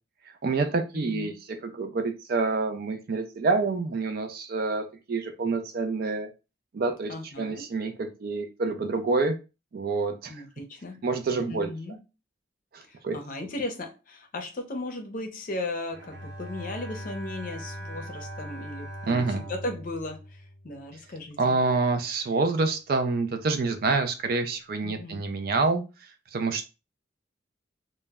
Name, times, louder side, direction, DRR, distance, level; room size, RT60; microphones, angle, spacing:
voice 1, 0.3-1.3 1.6-6.3 6.7-9.4 9.7-10.4 11.0-11.7 12.7-13.2 19.0-19.4 21.4-25.8 26.3-26.6, right 3 dB, 50° right, 7 dB, 0.4 m, -27 dB
voice 2, 0.9-1.3 7.1-7.6 10.3-11.0 11.5-12.0 12.9-21.6 24.8-25.2, left 2 dB, 45° left, 4 dB, 0.5 m, -36 dB
Bowed string instrument, 15.9-21.2, equal, 75° right, 0.9 m, -40 dB
2.1 x 2.0 x 3.3 m, 0.29 s
head